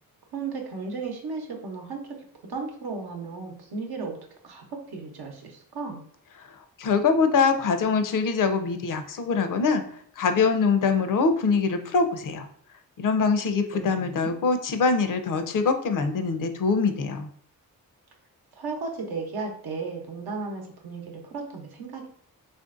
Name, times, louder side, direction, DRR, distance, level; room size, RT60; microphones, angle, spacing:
voice 1, 0.3-2.2 2.5-4.2 4.4-6.0 13.7-14.3 18.6-22.1, right 4 dB, 85° right, 2 dB, 0.8 m, -35 dB
voice 2, 6.8-9.8 10.2-12.5 13.0-17.3, left 5 dB, 60° left, 8 dB, 0.5 m, -23 dB
3.3 x 2.5 x 2.4 m, 0.62 s
cardioid pair, 60°, 37 cm